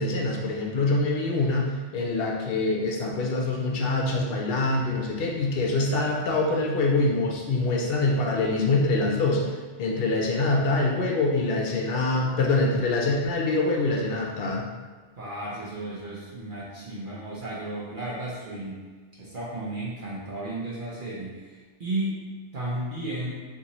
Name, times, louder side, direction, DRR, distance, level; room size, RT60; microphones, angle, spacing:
voice 1, 0.0-9.5 9.8-14.6, left 2 dB, 65° left, -1 dB, 0.7 m, -25 dB
voice 2, 15.2-18.8 19.2-23.4, right 1 dB, 55° right, -6 dB, 0.8 m, -34 dB
3.8 x 2.6 x 2.9 m, 1.4 s
omnidirectional pair, 1.1 m